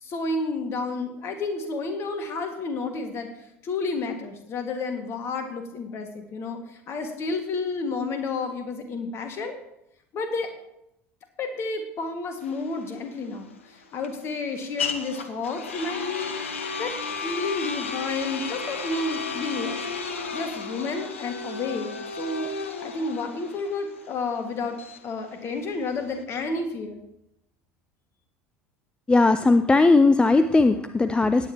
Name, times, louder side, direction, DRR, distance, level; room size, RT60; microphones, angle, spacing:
voice 1, 0.0-3.3 3.6-9.6 10.1-10.5 11.4-16.9 17.2-22.5 22.8-24.8 25.0-27.0, left 3 dB, 40° left, 5 dB, 2.0 m, -31 dB
sound 1, 12.4-26.2, left 4 dB, 75° left, 0.9 m, -34 dB
voice 2, 29.1-31.5, left 3 dB, 15° left, 11 dB, 0.4 m, -18 dB
17.0 x 9.3 x 3.0 m, 0.81 s
figure-of-eight pair, 70°, 7 cm